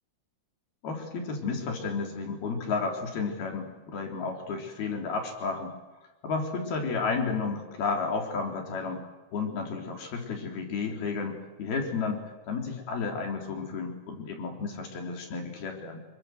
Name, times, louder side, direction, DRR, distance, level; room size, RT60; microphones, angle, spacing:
voice 1, 0.8-5.7 6.2-9.0 9.3-16.1, left 4 dB, 75° left, 2 dB, 5.7 m, -32 dB
27.5 x 23.5 x 8.1 m, 1.1 s
omnidirectional pair, 4.4 m